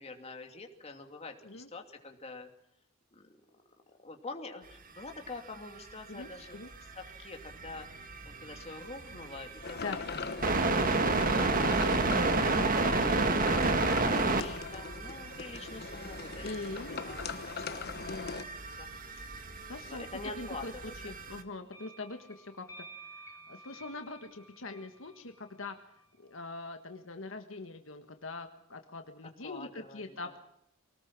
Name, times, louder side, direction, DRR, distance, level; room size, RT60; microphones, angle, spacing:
voice 1, 0.0-2.5 3.1-3.4 4.0-6.6 7.0-10.2 10.5-17.9 18.3-18.5 18.8-18.9 19.9-21.2 29.4-30.4, left 3 dB, 30° left, 4 dB, 2.7 m, -46 dB
sound 1, 5.7-5.8 6.2-6.3 6.7-21.4, right 3 dB, 45° right, 1.6 m, -32 dB
voice 2, 6.1-6.7 9.8-10.0 11.9-12.7 16.4-17.1 18.1-18.4 19.6-20.0 20.4-22.6 23.1-25.7 26.2-30.4, left 3 dB, 70° left, 6 dB, 1.5 m, -43 dB
sound 2, 9.6-18.4, left 4 dB, 50° left, 1.2 m, -40 dB
sound 3, 21.7-26.1, right 2 dB, 15° left, 2.5 m, -52 dB
24.5 x 19.0 x 6.1 m, 0.79 s
head